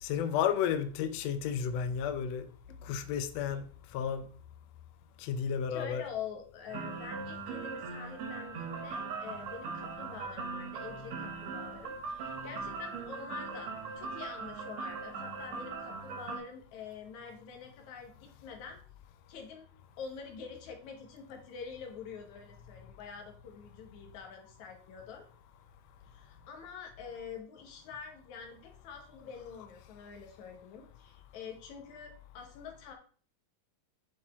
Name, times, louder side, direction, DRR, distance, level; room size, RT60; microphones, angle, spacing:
voice 1, 0.0-2.5 2.8-3.6 3.9-4.2 5.2-6.0 29.6-29.7, left 8 dB, 85° left, 1.5 m, -32 dB
voice 2, 5.7-18.8 19.3-19.7 20.0-25.2 26.1-32.9, left 6 dB, 65° left, 2.5 m, -46 dB
sound 1, 6.7-16.4, right 4 dB, 60° right, 2.2 m, -40 dB
8.8 x 4.3 x 3.6 m
omnidirectional pair, 3.8 m